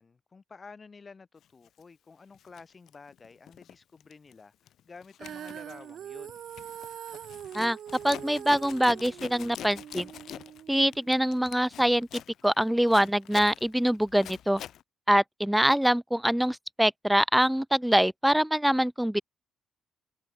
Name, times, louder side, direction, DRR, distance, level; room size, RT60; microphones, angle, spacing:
voice 1, 0.0-4.5 4.8-6.4, left 4 dB, 35° left, 7.7 m, -51 dB
Zipper (clothing), 1.7-1.8 2.3-3.8 4.0-4.3 4.7-14.8, left 11 dB, 70° left, 3.5 m, -45 dB
Female singing, 5.2-11.4, right 10 dB, 65° right, 4.5 m, -43 dB
voice 2, 8.0-10.1 10.7-14.6 15.1-19.2, equal, 5° right, 0.7 m, -24 dB
cardioid pair, 90°, 0 cm